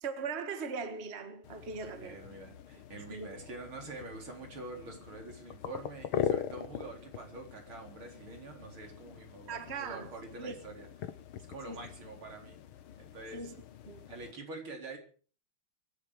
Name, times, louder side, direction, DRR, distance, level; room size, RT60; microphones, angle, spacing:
voice 1, 0.0-2.2 3.0-3.3 9.5-10.5 11.7-11.9 13.3-13.6 13.9-14.0, right 5 dB, 30° right, 1.8 m, -40 dB
sound 1, 1.4-14.3, left 9 dB, 85° left, 2.0 m, -42 dB
voice 2, 1.8-12.6 13.0-13.5 14.1-15.0, right 3 dB, 75° right, 5.0 m, -46 dB
23.5 x 11.5 x 4.9 m
omnidirectional pair, 2.3 m